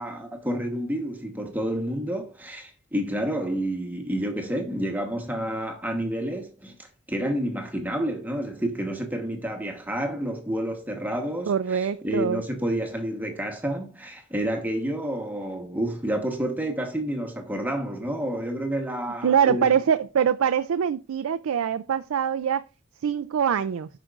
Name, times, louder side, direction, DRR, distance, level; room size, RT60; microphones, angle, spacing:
voice 1, 0.0-6.7 7.1-19.7, right 1 dB, 10° right, 1.0 m, -29 dB
voice 2, 11.5-12.4 19.2-22.6 23.0-23.9, right 8 dB, 80° right, 0.4 m, -23 dB
11.5 x 5.1 x 2.4 m
head